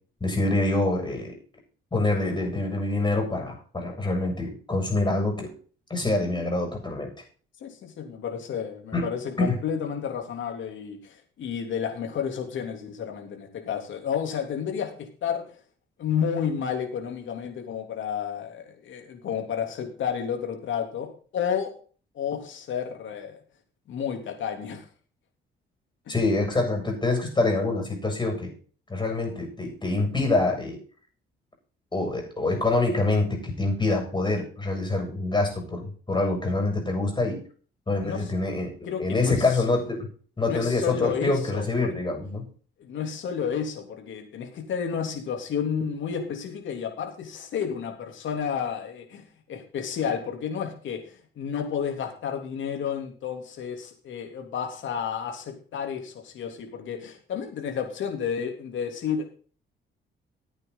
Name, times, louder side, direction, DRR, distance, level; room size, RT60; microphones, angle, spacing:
voice 1, 0.2-1.3 1.9-5.5 5.9-7.1 8.9-9.1 9.5-9.6 26.1-28.5 28.9-30.8 31.9-37.4 37.9-40.1 40.4-42.4, left 2 dB, 20° left, 2 dB, 7.3 m, -26 dB
voice 2, 7.6-15.4 16.0-21.7 22.1-23.4 23.9-24.8 26.1-26.2 38.0-38.2 38.8-39.6 40.4-41.9 42.8-49.2 49.5-59.4, left 7 dB, 75° left, 4 dB, 3.3 m, -31 dB
14.5 x 9.0 x 4.1 m, 0.41 s
cardioid pair, 90°, 20 cm